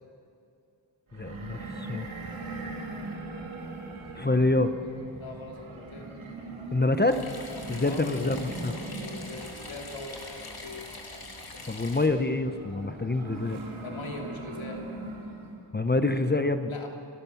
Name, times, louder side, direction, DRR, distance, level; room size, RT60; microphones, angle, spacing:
voice 1, 1.1-2.1 4.1-4.7 6.7-7.2 7.7-8.7 11.7-13.6 15.7-16.7, left 2 dB, 20° left, 9 dB, 0.9 m, -26 dB
sound 1, 1.1-15.6, right 2 dB, 85° right, 3.2 m, -41 dB
voice 2, 5.2-6.1 7.8-8.1 9.0-10.8 13.8-14.8 16.7-16.9, left 3 dB, 75° left, 1 dB, 3.3 m, -41 dB
sound 2, 7.1-12.1, left 2 dB, 50° left, 3.1 m, -43 dB
29.5 x 13.0 x 7.1 m, 2.6 s
wide cardioid pair, 75°, 47 cm